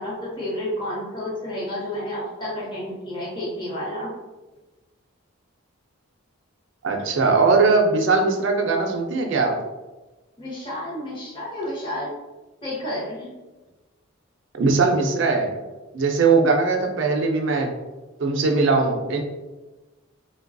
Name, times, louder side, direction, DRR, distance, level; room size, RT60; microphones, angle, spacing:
voice 1, 0.0-4.1 10.4-12.1 12.6-13.3, left 1 dB, 20° left, -7 dB, 0.8 m, -30 dB
voice 2, 6.8-9.5 14.6-15.5 15.9-17.7 18.2-19.2, right 4 dB, 60° right, 3 dB, 0.4 m, -20 dB
3.2 x 2.2 x 2.5 m, 1.2 s
head